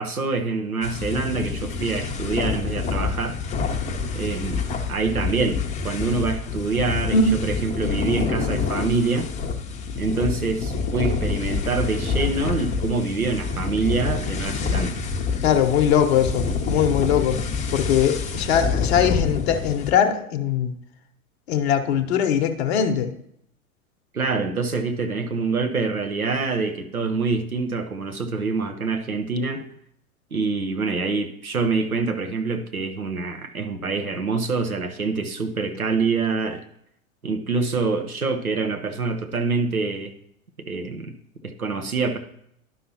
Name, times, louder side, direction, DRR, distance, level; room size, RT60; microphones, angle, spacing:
voice 1, 0.0-3.4 4.1-5.6 5.8-9.3 10.0-14.9 24.1-29.6 30.3-36.6 37.2-40.1 40.6-41.2 41.4-42.2, right 4 dB, 85° right, 7 dB, 0.9 m, -25 dB
sound 1, 0.8-19.9, left 5 dB, 15° left, 0.7 m, -27 dB
voice 2, 15.4-20.7 21.5-23.1, left 7 dB, 50° left, 5 dB, 0.9 m, -21 dB
11.0 x 5.6 x 2.8 m, 0.72 s
figure-of-eight pair, 100°, 42 cm